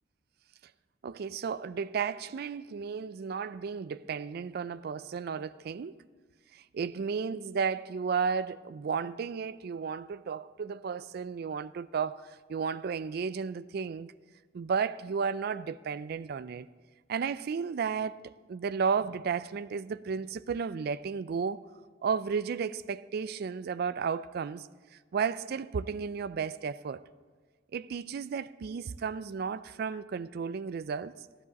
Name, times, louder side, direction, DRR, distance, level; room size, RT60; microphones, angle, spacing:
voice 1, 1.0-6.0 6.5-14.1 14.5-16.7 17.1-21.6 22.0-24.7 25.1-27.0 27.7-31.1, right 6 dB, 55° right, 0.4 m, -33 dB
14.5 x 10.0 x 4.1 m
head